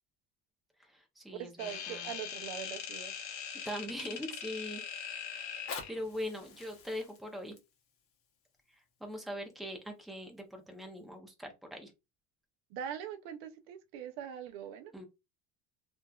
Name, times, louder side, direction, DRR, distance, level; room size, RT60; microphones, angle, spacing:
voice 1, 0.8-2.1 3.6-5.5 5.9-7.6 9.0-11.9 14.9-15.0, equal, ahead, 0.7 m, -42 dB
voice 2, 1.3-3.5 12.7-14.9, right 9 dB, 75° right, 0.6 m, -42 dB
sound 1, 1.6-6.0, left 8 dB, 70° left, 0.9 m, -41 dB
Fire, 5.4-10.4 11.0-11.1, left 5 dB, 40° left, 0.9 m, -49 dB
2.9 x 2.5 x 2.3 m
supercardioid pair, 115°, 34 cm